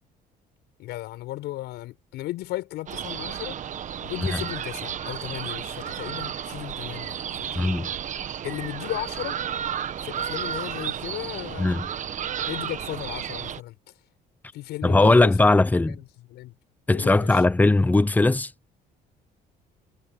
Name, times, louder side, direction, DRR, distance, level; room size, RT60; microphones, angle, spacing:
voice 1, 0.8-3.6 4.0-7.7 8.4-9.4 10.0-11.9 12.5-13.8 14.5-15.6 15.9-16.0 16.3-16.5 16.9-17.4, left 16 dB, 85° left, 6.9 m, -35 dB
sound 1, 2.9-13.6, right 9 dB, 45° right, 1.2 m, -33 dB
voice 2, 7.5-7.9 11.6-11.9 14.8-16.0 16.9-18.5, left 2 dB, 10° left, 0.8 m, -19 dB
cardioid pair, 110°, 17 cm